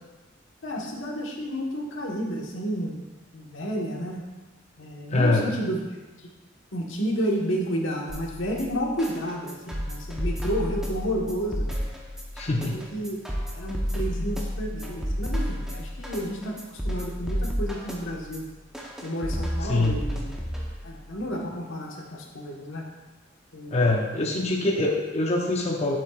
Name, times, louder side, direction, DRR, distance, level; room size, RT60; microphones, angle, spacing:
voice 1, 0.6-3.0 3.3-4.2 4.8-5.8 6.7-11.7 12.5-13.2 13.6-16.6 16.8-18.4 19.0-20.3 20.8-22.8 23.5-23.8 24.2-24.3, equal, 85° left, -1 dB, 1.4 m, -31 dB
voice 2, 5.1-5.5 12.4-12.8 19.7-20.0 23.7-26.0, left 2 dB, 35° left, 0 dB, 0.6 m, -24 dB
sound 1, 8.1-21.1, equal, 5° right, 0.9 m, -32 dB
8.7 x 7.6 x 2.4 m, 1.2 s
head